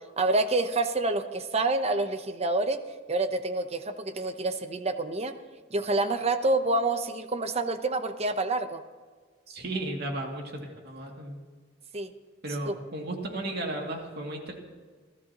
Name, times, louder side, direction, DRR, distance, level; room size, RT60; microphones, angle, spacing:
voice 1, 0.2-2.8 3.1-5.3 5.7-8.8 11.9-12.1 12.7-12.8, right 2 dB, 30° right, 9 dB, 0.8 m, -27 dB
voice 2, 9.5-11.4 12.4-14.5, right 1 dB, 55° right, 1 dB, 2.4 m, -34 dB
28.5 x 13.0 x 3.0 m, 1.5 s
head